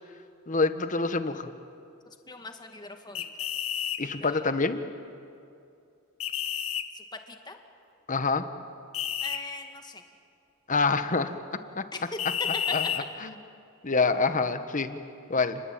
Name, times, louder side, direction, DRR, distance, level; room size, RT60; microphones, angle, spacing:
voice 1, 0.5-1.5 4.0-4.8 8.1-8.4 10.7-11.3 11.8-11.9 12.7-12.8 13.8-15.0 15.3-15.6, left 4 dB, 40° left, 10 dB, 1.4 m, -26 dB
voice 2, 2.0-3.3 4.2-4.5 6.9-7.6 9.2-10.0 11.9-12.0 12.5-12.6, left 3 dB, 20° left, 5 dB, 2.2 m, -41 dB
sound 1, 3.2-4.0 6.2-6.9 8.9-9.4 12.2-13.0, left 9 dB, 85° left, 1.6 m, -30 dB
29.5 x 21.0 x 9.0 m, 2.5 s
head